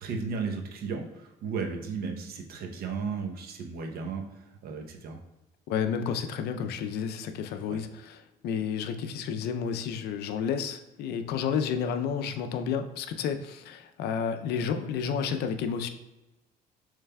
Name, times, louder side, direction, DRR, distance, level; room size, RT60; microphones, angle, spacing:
voice 1, 0.0-5.2 7.7-7.8, right 5 dB, 65° right, 3 dB, 0.8 m, -35 dB
voice 2, 5.7-15.9, left 7 dB, 75° left, 8 dB, 0.5 m, -31 dB
6.7 x 3.2 x 2.2 m, 1.0 s
cardioid pair, 110°, 17 cm